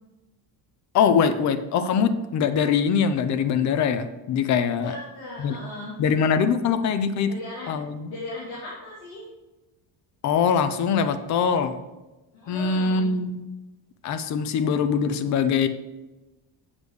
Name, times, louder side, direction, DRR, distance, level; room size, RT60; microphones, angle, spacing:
voice 1, 0.9-5.0 5.4-5.6 6.0-7.3 7.7-8.1 10.2-11.8 12.5-13.4 14.0-15.7, left 6 dB, 40° left, 11 dB, 0.5 m, -23 dB
voice 2, 4.7-6.0 7.3-7.8 8.1-9.2 12.3-13.1, left 2 dB, 90° left, -6 dB, 2.7 m, -37 dB
8.0 x 7.4 x 3.2 m, 1.1 s
cardioid pair, 170°, 44 cm